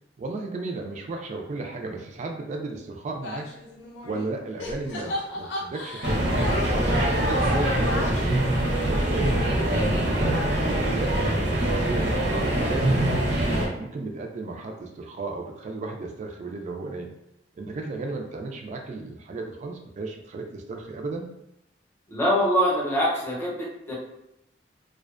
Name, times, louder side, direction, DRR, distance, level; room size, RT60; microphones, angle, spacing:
voice 1, 0.2-3.5 4.0-8.4 8.8-13.2 13.8-17.1 17.6-21.3, right 3 dB, 40° right, 2 dB, 0.3 m, -35 dB
sound 1, 3.2-4.3 4.6-9.3, left 2 dB, 70° left, 0.5 m, -35 dB
sound 2, 6.0-13.7, right 1 dB, 70° right, 0.6 m, -23 dB
voice 2, 22.1-23.9, equal, 15° left, -5 dB, 0.7 m, -24 dB
2.4 x 2.1 x 2.4 m, 0.82 s
head